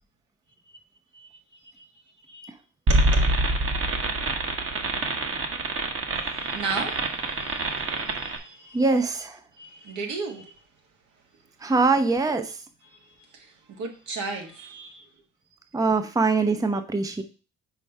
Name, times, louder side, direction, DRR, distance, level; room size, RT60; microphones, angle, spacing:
sound 1, 2.9-8.4, right 2 dB, 45° right, 1.4 m, -25 dB
voice 1, 6.1-8.8 9.6-10.6 12.8-15.1, right 4 dB, 75° right, 2 dB, 1.8 m, -36 dB
voice 2, 8.7-9.4 11.6-12.6 15.7-17.2, right 3 dB, 10° right, 8 dB, 0.7 m, -23 dB
5.0 x 4.5 x 5.3 m, 0.35 s
cardioid pair, 90°, 30 cm